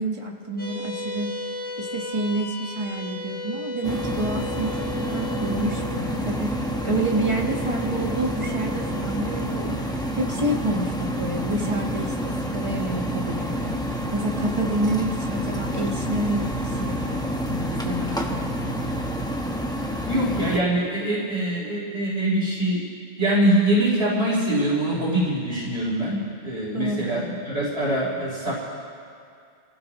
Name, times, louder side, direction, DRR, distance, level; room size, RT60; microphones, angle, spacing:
voice 1, 0.0-1.4 1.8-9.8 10.1-13.8 14.1-18.8 26.7-27.2, right 1 dB, 30° right, 0 dB, 1.4 m, -29 dB
sound 1, 0.6-13.2, left 2 dB, 55° left, 2.7 m, -37 dB
sound 2, 3.8-20.6, equal, 5° left, 0.9 m, -28 dB
voice 2, 20.1-22.8 23.2-28.5, right 1 dB, 85° right, -7 dB, 4.1 m, -23 dB
29.5 x 15.5 x 3.0 m, 2.3 s
omnidirectional pair, 1.1 m